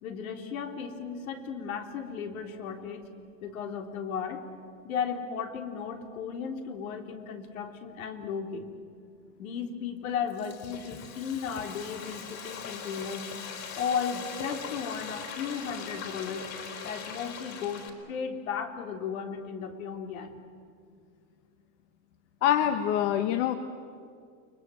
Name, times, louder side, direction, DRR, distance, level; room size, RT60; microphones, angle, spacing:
voice 1, 0.0-3.1 3.4-4.4 4.8-8.7 9.4-13.2 13.8-16.4 16.8-20.4, left 6 dB, 85° left, 4 dB, 3.5 m, -35 dB
Frying (food), 10.0-17.9, left 7 dB, 40° left, 4.1 m, -41 dB
voice 2, 22.4-23.6, left 11 dB, 60° left, 8 dB, 1.4 m, -25 dB
30.0 x 22.0 x 7.7 m, 2.2 s
supercardioid pair, 145°, 40 cm